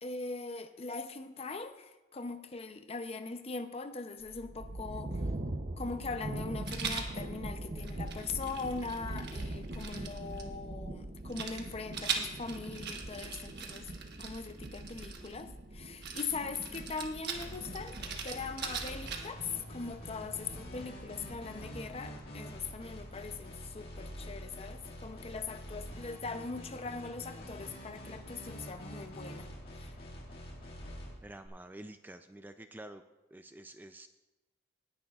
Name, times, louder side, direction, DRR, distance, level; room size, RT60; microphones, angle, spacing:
voice 1, 0.0-5.3 5.8-13.9 14.2-29.5 29.7-29.9, left 4 dB, 30° left, 9 dB, 0.6 m, -41 dB
sound 1, 4.2-22.3, right 1 dB, 40° right, 0.7 m, -43 dB
Rattle, 6.7-7.1 7.8-10.4 11.3-15.4 16.0-19.5, right 6 dB, 60° right, 1.3 m, -40 dB
sound 2, 17.3-31.5, equal, 50° left, 2.2 m, -46 dB
voice 2, 31.2-33.0 33.3-34.1, right 1 dB, 10° right, 8 dB, 0.3 m, -48 dB
18.5 x 10.0 x 2.4 m, 1.1 s
head